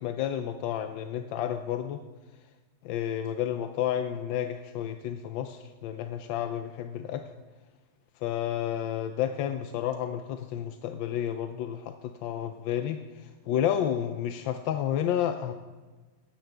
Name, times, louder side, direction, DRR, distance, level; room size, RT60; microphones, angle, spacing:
voice 1, 0.0-2.0 2.8-7.2 8.2-15.5, left 10 dB, 90° left, 7 dB, 1.3 m, -31 dB
14.5 x 10.5 x 3.4 m, 1.3 s
omnidirectional pair, 2.0 m